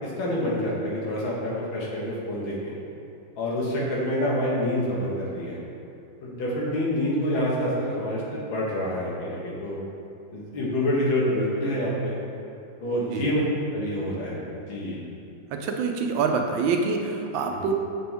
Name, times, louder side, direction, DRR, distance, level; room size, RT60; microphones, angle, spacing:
voice 1, 0.0-2.7 3.4-5.6 6.2-9.8 10.3-12.2 12.8-13.4 13.7-15.0 17.6-17.7, left 1 dB, 85° left, -5 dB, 2.2 m, -27 dB
voice 2, 15.5-17.7, right 4 dB, 80° right, 3 dB, 1.4 m, -26 dB
7.5 x 6.1 x 3.4 m, 2.7 s
omnidirectional pair, 2.1 m